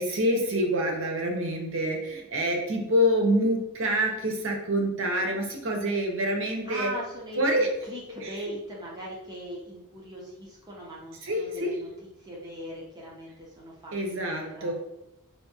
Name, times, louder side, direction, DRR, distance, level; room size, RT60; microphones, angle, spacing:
voice 1, 0.0-6.9 7.4-7.7 8.2-8.5 11.2-11.7 13.9-14.7, equal, 60° right, 2 dB, 0.6 m, -26 dB
voice 2, 6.6-11.9 12.2-13.9 14.3-14.7, right 1 dB, 20° right, -5 dB, 0.6 m, -40 dB
3.4 x 2.6 x 2.8 m, 0.91 s
head